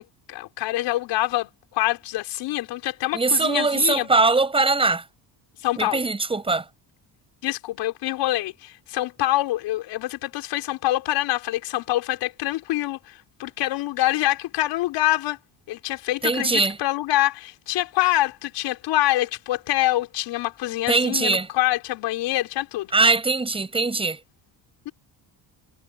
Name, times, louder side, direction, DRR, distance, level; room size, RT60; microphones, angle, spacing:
voice 1, 0.0-4.1 5.6-6.0 7.4-13.1 13.4-15.4 15.7-22.9 24.8-24.9, left 16 dB, 85° left, 4.7 m, -25 dB
voice 2, 3.1-5.0 5.8-6.6 16.2-16.8 20.9-21.5 22.9-24.2, right 3 dB, 15° right, 6.5 m, -21 dB
cardioid pair, 180°, 41 cm